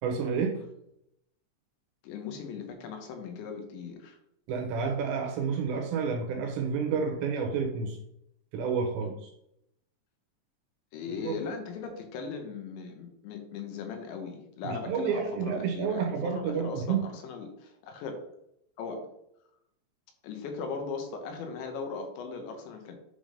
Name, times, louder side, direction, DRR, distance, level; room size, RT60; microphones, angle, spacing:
voice 1, 0.0-0.6 4.5-8.0 8.5-9.3 11.2-11.4 14.6-17.0, right 6 dB, 75° right, 3 dB, 3.0 m, -30 dB
voice 2, 2.0-4.2 10.9-18.1 18.8-19.2 20.2-23.0, left 5 dB, 75° left, 4 dB, 3.1 m, -38 dB
9.3 x 3.6 x 5.1 m, 0.78 s
omnidirectional pair, 5.6 m